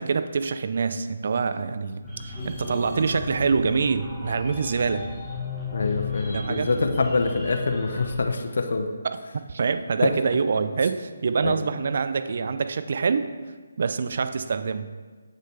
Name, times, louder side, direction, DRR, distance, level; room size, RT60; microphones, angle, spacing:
voice 1, 0.0-5.1 6.3-6.7 9.0-9.2 9.5-13.3 13.8-14.9, right 5 dB, 55° right, 10 dB, 0.4 m, -25 dB
sound 1, 2.0-8.2, left 3 dB, 5° right, 1.6 m, -34 dB
voice 2, 5.7-8.9 10.0-10.1 11.4-11.6, left 3 dB, 65° left, 5 dB, 0.7 m, -25 dB
7.5 x 6.5 x 3.3 m, 1.4 s
figure-of-eight pair, 150°, 0 cm